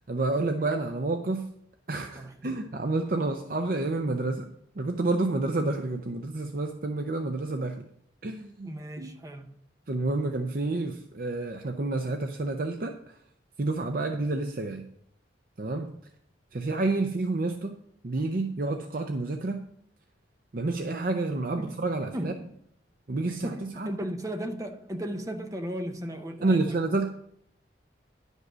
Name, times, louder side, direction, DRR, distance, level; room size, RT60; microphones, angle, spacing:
voice 1, 0.1-1.5 1.9-4.5 4.8-7.8 8.2-8.7 9.0-9.1 9.9-13.0 13.6-14.8 15.6-16.0 16.5-17.8 18.0-19.6 20.5-22.3 23.1-23.9 26.4-27.1, right 2 dB, 50° right, 0.6 m, -29 dB
voice 2, 2.1-2.6 8.6-9.5 21.6-21.7 22.1-22.6 23.3-26.8, equal, 20° right, 0.8 m, -36 dB
10.5 x 5.4 x 6.1 m
head